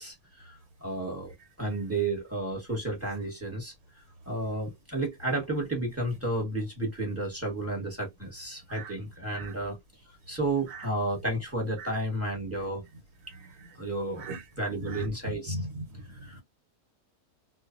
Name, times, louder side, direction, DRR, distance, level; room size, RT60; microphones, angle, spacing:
voice 1, 0.0-1.3 1.6-3.7 4.3-9.8 10.3-12.8 13.8-14.3 14.6-15.5 16.2-16.4, right 2 dB, 10° right, 1.1 m, -32 dB
voice 2, 13.2-13.7 14.2-14.4 14.8-15.1 15.5-16.4, right 1 dB, 70° right, 1.2 m, -39 dB
2.5 x 2.3 x 2.5 m
omnidirectional pair, 1.7 m